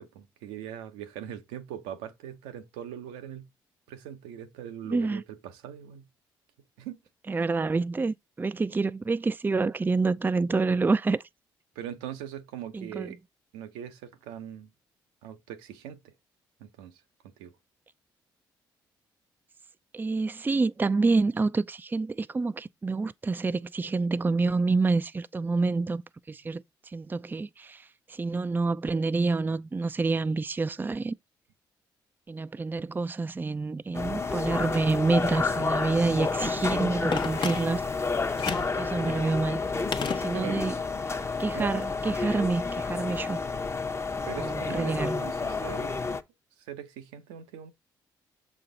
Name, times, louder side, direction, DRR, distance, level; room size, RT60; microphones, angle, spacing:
voice 1, 0.0-3.5 3.9-6.0 6.8-7.0 11.8-13.2 13.5-14.7 15.2-16.1 16.6-17.0 17.4-17.5 40.3-40.6 41.5-41.8 44.3-46.2 46.7-47.7, right 10 dB, 80° right, 0.7 m, -41 dB
voice 2, 4.9-5.2 7.3-11.2 12.7-13.2 19.9-26.0 26.3-26.6 26.9-31.2 32.3-37.8 38.7-39.6 40.2-40.7 41.4-43.4 44.4-45.2, right 3 dB, 20° right, 0.4 m, -27 dB
sound 1, 33.9-46.2, left 4 dB, 25° left, 0.9 m, -30 dB
Telephone, 37.1-38.0 38.4-38.8 39.9-40.8 41.1-41.2, left 6 dB, 45° left, 0.9 m, -33 dB
6.8 x 4.3 x 3.9 m
hypercardioid pair, 50°, 11 cm